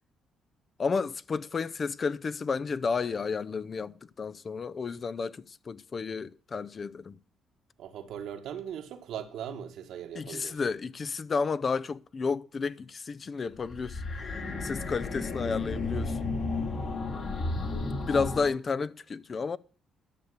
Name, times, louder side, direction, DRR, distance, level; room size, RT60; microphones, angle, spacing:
voice 1, 0.8-7.2 10.1-16.3 18.0-19.6, left 5 dB, 40° left, 0.5 m, -32 dB
voice 2, 7.8-10.6 16.8-17.3, right 9 dB, 80° right, 1.6 m, -40 dB
sound 1, 13.5-18.5, left 3 dB, 55° left, 2.6 m, -33 dB
12.0 x 6.6 x 8.2 m
cardioid pair, 90°, 0 cm